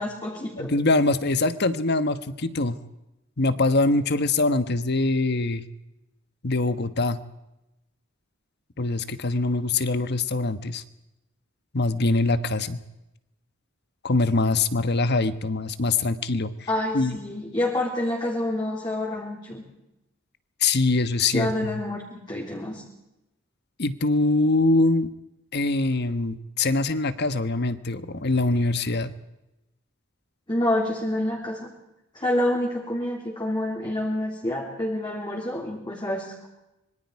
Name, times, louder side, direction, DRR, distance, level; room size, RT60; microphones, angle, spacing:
voice 1, 0.0-0.7 16.7-19.6 21.3-22.8 30.5-31.7 32.1-36.5, left 1 dB, 20° left, -3 dB, 3.5 m, -28 dB
voice 2, 0.6-2.8 3.4-5.6 6.4-7.2 8.8-10.8 11.7-12.8 14.0-16.5 16.9-17.2 20.6-21.8 23.8-25.1 25.5-29.1, left 2 dB, 55° left, 12 dB, 1.3 m, -23 dB
25.5 x 23.0 x 4.8 m, 0.93 s
head